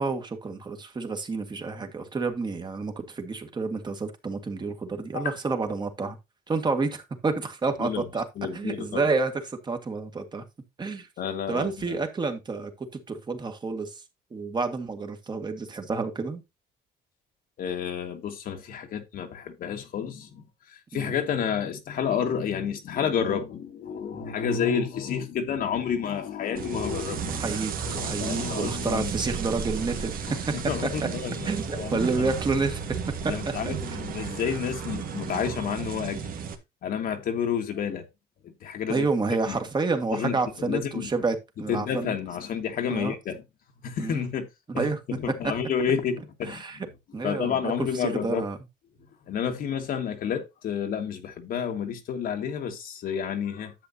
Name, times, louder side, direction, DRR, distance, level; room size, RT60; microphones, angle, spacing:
voice 1, 0.0-6.2 6.5-8.2 8.5-10.4 10.8-11.1 11.5-14.0 14.3-16.4 20.9-21.1 27.3-30.6 31.5-32.8 33.5-34.2 38.9-42.1 42.9-43.1 44.0-44.3 44.7-45.5 46.5-46.9 47.1-48.6, right 4 dB, 25° right, 1.9 m, -29 dB
voice 2, 8.4-9.0 11.2-12.0 17.6-27.6 27.8-29.1 29.9-32.3 33.2-36.2 36.8-38.1 38.4-39.0 39.5-39.6 40.1-41.1 41.7-43.4 43.8-44.5 44.7-46.6 47.2-48.4 49.3-53.7, left 7 dB, 60° left, 1.7 m, -30 dB
sound 1, 26.6-36.6, right 6 dB, 55° right, 1.6 m, -33 dB
10.5 x 7.8 x 2.8 m
cardioid pair, 110°, 17 cm